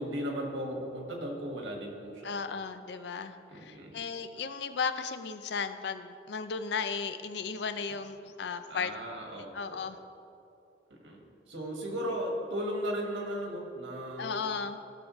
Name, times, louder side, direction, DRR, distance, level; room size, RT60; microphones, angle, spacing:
voice 1, 0.0-2.3 3.5-4.0 8.7-9.8 10.9-14.5, equal, 80° right, 0 dB, 1.7 m, -36 dB
voice 2, 2.2-8.9 9.3-10.0 14.2-14.8, left 5 dB, 65° left, 10 dB, 0.4 m, -35 dB
15.5 x 6.4 x 3.1 m, 2.7 s
head